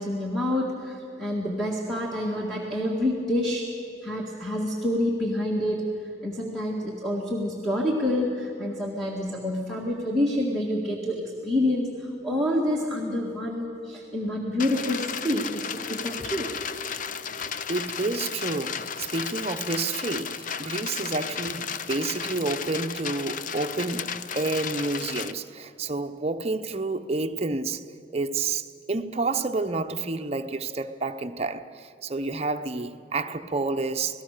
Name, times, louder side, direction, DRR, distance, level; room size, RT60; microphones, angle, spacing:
voice 1, 0.0-3.7 4.0-5.9 6.2-16.5, left 1 dB, ahead, 1.9 m, -27 dB
sound 1, 14.6-25.3, left 7 dB, 45° left, 0.6 m, -34 dB
voice 2, 17.7-27.8 28.1-34.2, right 3 dB, 35° right, 0.8 m, -29 dB
27.0 x 18.0 x 6.7 m
head